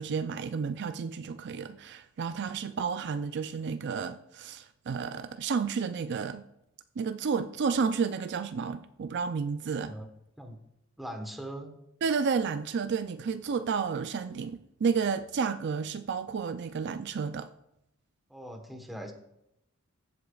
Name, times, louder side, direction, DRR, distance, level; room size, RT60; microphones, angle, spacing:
voice 1, 0.0-6.5 7.0-9.9 12.0-17.5, right 5 dB, 50° right, 0.4 m, -31 dB
voice 2, 11.0-11.7 18.3-19.1, right 1 dB, ahead, 1.2 m, -40 dB
14.5 x 8.1 x 2.4 m
head